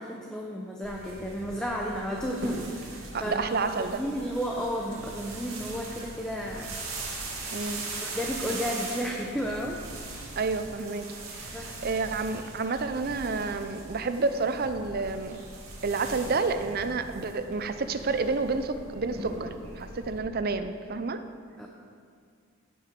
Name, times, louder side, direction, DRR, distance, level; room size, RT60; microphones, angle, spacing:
voice 1, 0.0-6.7 7.1-7.2 8.0-9.8 11.5-11.8 21.6-21.7, equal, 5° left, -1 dB, 0.7 m, -33 dB
sound 1, 0.8-20.2, right 2 dB, 75° right, 2.4 m, -40 dB
voice 2, 3.1-4.0 7.5-7.8 10.4-11.1 11.4-15.4 15.8-21.2, right 4 dB, 45° right, 10 dB, 0.5 m, -30 dB
16.5 x 5.9 x 5.2 m, 2.2 s
head